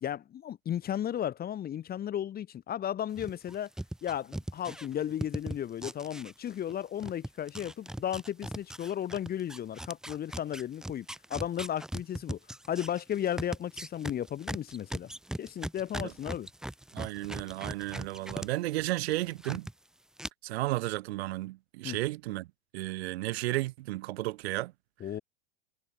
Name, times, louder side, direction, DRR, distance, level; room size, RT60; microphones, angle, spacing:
voice 1, 0.0-3.7 4.0-12.4 12.7-15.1 15.4-16.5 21.8-22.0 25.0-25.2, left 10 dB, 30° left, 2.2 m, -34 dB
sound 1, 3.2-6.7 7.0-18.5 18.8-19.7 20.2-20.3, right 1 dB, ahead, 0.8 m, -39 dB
voice 2, 16.9-19.7 20.4-22.5 22.7-24.7, right 18 dB, 70° right, 1.4 m, -33 dB
hypercardioid pair, 120°, 33 cm